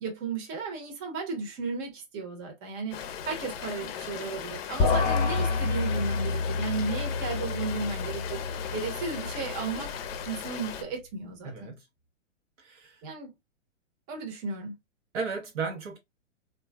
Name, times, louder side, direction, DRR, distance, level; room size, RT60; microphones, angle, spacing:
voice 1, 0.0-9.9 10.2-11.7 13.0-13.3 14.1-14.7, right 4 dB, 30° right, 1.0 m, -35 dB
Rain, 2.9-10.8, left 8 dB, 50° left, 0.6 m, -38 dB
sound 1, 4.8-10.3, left 4 dB, 25° left, 0.9 m, -29 dB
voice 2, 11.4-11.9 12.6-13.0 15.1-16.0, right 5 dB, 65° right, 1.0 m, -34 dB
3.0 x 2.5 x 2.2 m
hypercardioid pair, 130°, 38 cm